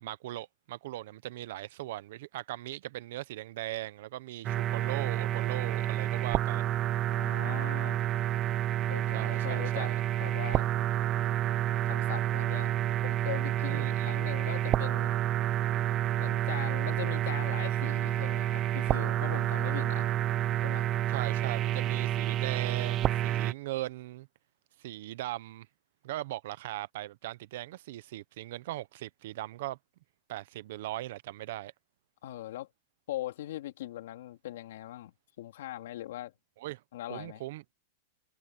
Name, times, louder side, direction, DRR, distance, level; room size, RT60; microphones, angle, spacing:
voice 1, 0.0-6.7 9.1-10.0 13.7-14.2 21.1-24.3 24.8-25.7 26.0-29.8 30.3-31.7 36.6-36.8 37.1-37.6, right 16 dB, 60° right, 0.9 m, -39 dB
sound 1, 4.4-23.5, right 12 dB, 25° right, 0.9 m, -29 dB
voice 2, 7.1-8.0 8.9-9.9 10.2-10.7 11.8-12.8 13.0-15.2 16.2-20.1 20.6-20.9 32.2-32.7 33.1-36.3 36.9-37.4, left 14 dB, 70° left, 3.1 m, -40 dB
supercardioid pair, 160°, 0 cm